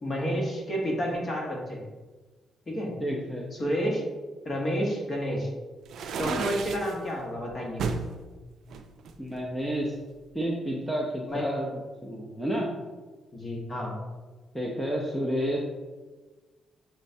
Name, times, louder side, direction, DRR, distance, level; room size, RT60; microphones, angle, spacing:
voice 1, 0.0-1.8 2.7-2.9 3.6-4.0 4.4-5.5 6.2-7.8 11.3-11.5 13.3-13.9, equal, 40° left, -1 dB, 1.0 m, -30 dB
voice 2, 3.0-3.5 6.2-6.5 9.2-10.0 10.3-12.7 14.5-15.6, equal, 5° left, -3 dB, 0.5 m, -30 dB
sound 1, 5.9-6.9 7.8-8.1 8.7-9.8, right 5 dB, 75° right, 0.3 m, -32 dB
6.2 x 2.2 x 2.7 m, 1.3 s
cardioid pair, 85°, 0 cm